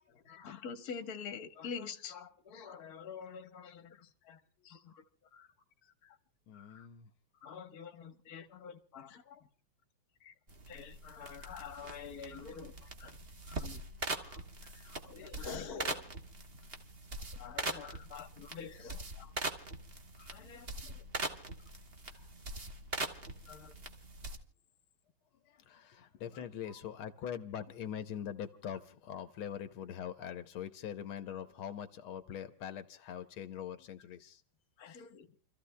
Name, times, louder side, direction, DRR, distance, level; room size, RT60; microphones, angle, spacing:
voice 1, 0.0-5.0 5.3-5.5 6.0-6.2 6.5-6.9 7.4-9.5 10.2-10.3 10.7-13.2 13.5-13.8 14.1-16.1 17.3-19.3 20.2-21.0 23.5-23.7 26.3-26.4 34.8-35.3, left 6 dB, 50° left, 7 dB, 1.6 m, -47 dB
voice 2, 6.5-7.1 22.1-22.3 25.4-34.4 34.9-35.0, left 9 dB, 80° left, 9 dB, 1.7 m, -43 dB
sound 1, 10.5-24.4, right 2 dB, 30° right, 1.4 m, -42 dB
29.5 x 14.5 x 2.2 m, 0.39 s
omnidirectional pair, 2.3 m